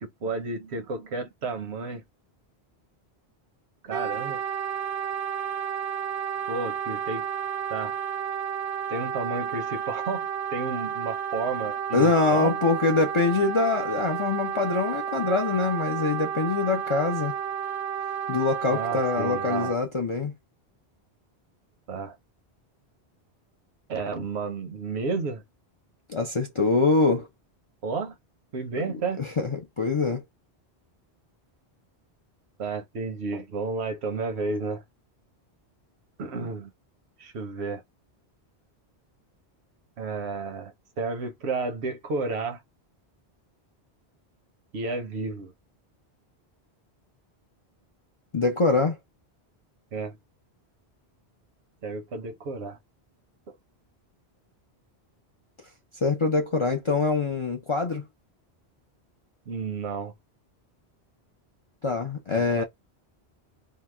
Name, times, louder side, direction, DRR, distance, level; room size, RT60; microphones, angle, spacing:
voice 1, 0.0-2.0 3.8-4.4 6.5-7.3 7.7-8.0 8.9-12.5 18.7-19.7 21.9-22.1 23.9-25.4 27.8-28.1 28.5-29.2 32.6-34.8 36.2-36.7 37.2-37.8 40.0-42.6 44.7-45.5 49.9-50.2 51.8-52.8 59.5-60.1 62.4-62.6, right 4 dB, 80° right, 1.0 m, -32 dB
Wind instrument woodwind instrument, 3.9-19.8, right 8 dB, 45° right, 0.6 m, -31 dB
voice 2, 11.9-17.3 18.3-20.3 26.1-27.3 28.9-30.2 48.3-49.0 56.0-58.1 61.8-62.6, left 3 dB, 45° left, 0.4 m, -24 dB
2.8 x 2.0 x 3.3 m
omnidirectional pair, 1.1 m